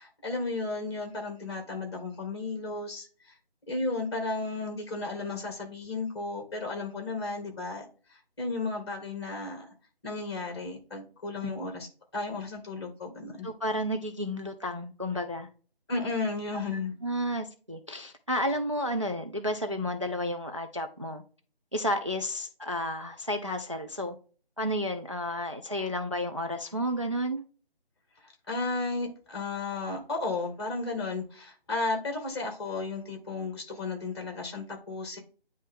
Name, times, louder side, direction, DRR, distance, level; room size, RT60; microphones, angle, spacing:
voice 1, 0.0-3.3 3.7-7.9 8.4-9.7 10.0-11.9 12.1-13.5 15.9-16.9 28.2-35.2, left 3 dB, 25° left, 1.9 m, -34 dB
voice 2, 13.4-15.5 17.0-21.2 21.7-24.1 24.6-27.4, equal, 30° right, 0.4 m, -31 dB
9.6 x 3.2 x 3.6 m
figure-of-eight pair, 155°, 30 cm